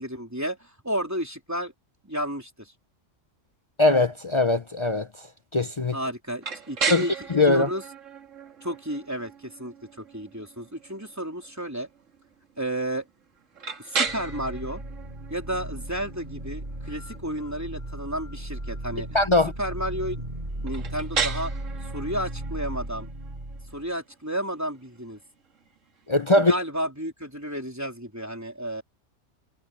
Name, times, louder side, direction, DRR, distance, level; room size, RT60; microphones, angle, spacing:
voice 1, 0.0-1.7 2.0-2.7 5.9-7.8 8.6-11.9 12.6-13.1 13.8-14.8 15.3-19.2 19.6-20.2 20.6-21.5 21.9-23.1 23.7-25.2 26.4-28.8, right 1 dB, 15° right, 3.6 m, -32 dB
voice 2, 3.8-5.1 5.5-6.0 6.9-7.0 7.3-7.7 19.1-19.5 26.1-26.5, left 2 dB, 40° left, 0.4 m, -21 dB
sound 1, 6.4-26.2, right 5 dB, 80° right, 2.2 m, -36 dB
sound 2, 14.1-23.9, right 1 dB, 35° right, 4.3 m, -36 dB
omnidirectional pair, 1.3 m